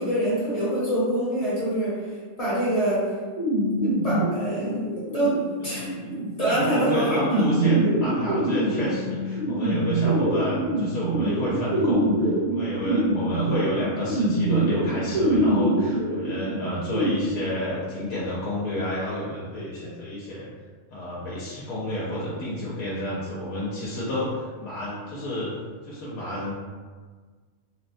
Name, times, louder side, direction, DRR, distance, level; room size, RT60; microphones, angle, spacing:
voice 1, 0.0-2.1 2.4-3.1 3.8-6.0 6.4-7.5, right 1 dB, 30° left, -11 dB, 0.8 m, -25 dB
sound 1, 3.4-17.1, right 1 dB, 75° right, 1.3 m, -25 dB
voice 2, 6.7-20.5 20.9-25.5 25.8-26.5, left 1 dB, 85° left, -7 dB, 1.1 m, -30 dB
3.1 x 2.1 x 2.6 m, 1.5 s
omnidirectional pair, 1.5 m